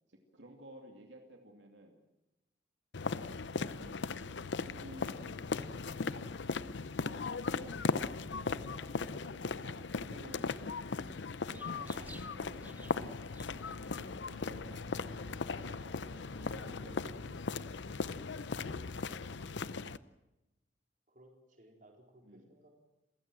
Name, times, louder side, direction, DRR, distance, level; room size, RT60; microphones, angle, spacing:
voice 1, 0.1-2.0 3.5-3.9 4.6-6.3 7.6-10.6 11.5-13.3 14.3-17.8 18.3-19.7 22.2-22.5, right 1 dB, 85° right, 3 dB, 2.6 m, -56 dB
sound 1, 2.9-20.0, left 4 dB, 80° left, 0.7 m, -38 dB
sound 2, 11.5-16.9, right 1 dB, 10° right, 1.4 m, -56 dB
voice 2, 21.1-22.7, right 1 dB, 45° right, 2 dB, 4.3 m, -60 dB
28.0 x 15.5 x 7.7 m, 0.98 s
head